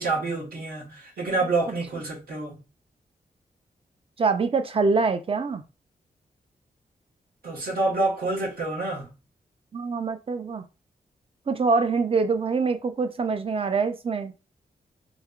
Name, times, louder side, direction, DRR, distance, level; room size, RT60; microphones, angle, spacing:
voice 1, 0.0-2.6 7.4-9.1, right 2 dB, 75° right, 1.5 m, -27 dB
voice 2, 4.2-5.6 9.7-10.7 11.5-14.3, right 4 dB, 35° right, 0.5 m, -24 dB
3.2 x 2.8 x 2.4 m
wide cardioid pair, 90°, 16 cm